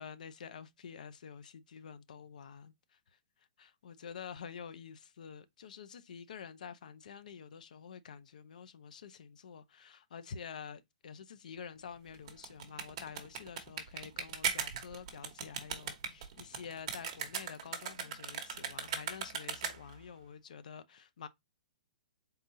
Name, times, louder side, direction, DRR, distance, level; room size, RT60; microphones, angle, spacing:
voice 1, 0.0-3.0 3.6-21.3, left 7 dB, 60° left, 0.7 m, -48 dB
sound 1, 12.1-20.0, right 7 dB, 40° right, 1.1 m, -39 dB
4.3 x 3.9 x 2.7 m
hypercardioid pair, 165°, 5 cm